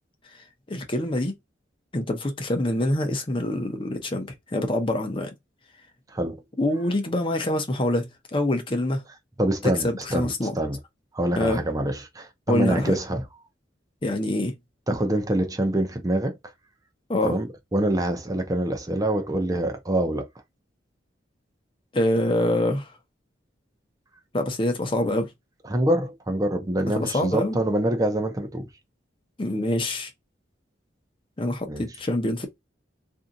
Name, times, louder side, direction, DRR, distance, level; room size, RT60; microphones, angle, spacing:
voice 1, 0.7-1.3 1.9-5.3 6.6-9.0 9.6-10.5 11.4-11.6 12.5-13.0 14.0-14.5 17.1-17.3 21.9-22.9 24.3-25.3 27.0-27.6 29.4-30.1 31.4-32.5, left 1 dB, 30° left, 0.8 m, -25 dB
voice 2, 9.4-10.8 11.1-13.2 14.9-16.4 17.2-17.5 17.7-20.3 25.7-28.7 31.7-31.8, right 1 dB, 20° right, 0.6 m, -25 dB
2.7 x 2.4 x 3.8 m
head